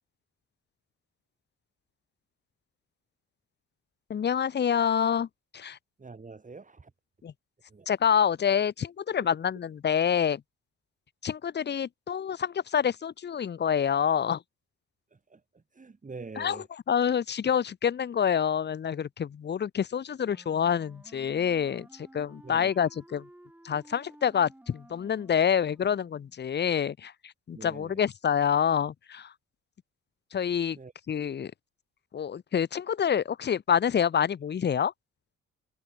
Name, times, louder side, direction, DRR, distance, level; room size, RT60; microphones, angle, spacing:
voice 1, 4.1-5.3 5.5-5.8 7.2-7.3 7.9-10.4 11.2-14.4 16.4-23.3 23.6-29.3 30.3-30.8 31.1-31.5 32.1-34.9, left 8 dB, 35° left, 0.7 m, -27 dB
voice 2, 6.0-6.9 7.7-7.9 9.2-9.3 15.1-16.7 22.4-22.8 27.5-28.1 30.7-30.9, right 4 dB, 25° right, 3.7 m, -45 dB
Wind instrument woodwind instrument, 20.2-26.4, right 1 dB, 5° right, 1.3 m, -54 dB
cardioid pair, 90°, 30 cm